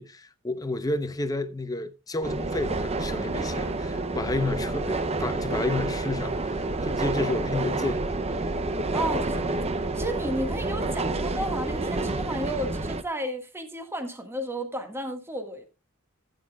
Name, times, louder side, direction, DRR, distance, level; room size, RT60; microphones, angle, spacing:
voice 1, 0.0-8.2, left 2 dB, 15° left, 0.8 m, -31 dB
sound 1, 2.2-13.0, right 2 dB, 30° right, 0.6 m, -29 dB
voice 2, 8.9-9.4 9.9-15.7, right 1 dB, 10° right, 1.7 m, -32 dB
16.0 x 9.3 x 2.3 m
head